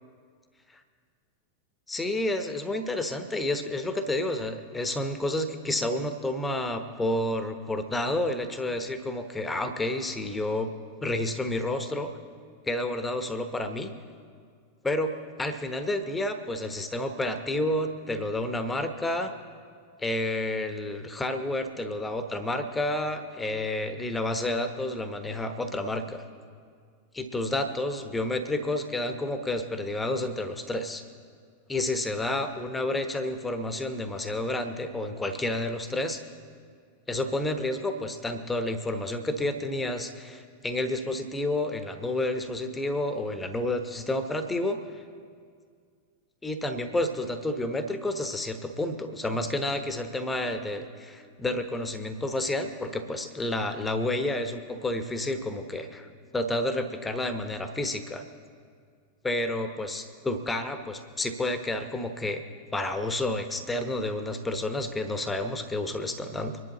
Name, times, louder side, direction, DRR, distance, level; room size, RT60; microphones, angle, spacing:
voice 1, 1.9-10.7 11.0-12.1 12.7-14.0 14.8-15.1 15.4-19.3 20.0-26.2 27.1-31.0 31.7-36.2 37.1-44.8 46.4-58.2 59.2-62.4 62.7-66.6, left 1 dB, 10° left, 8 dB, 1.1 m, -30 dB
25.0 x 11.0 x 3.1 m, 2.1 s
figure-of-eight pair, 90°, 0 cm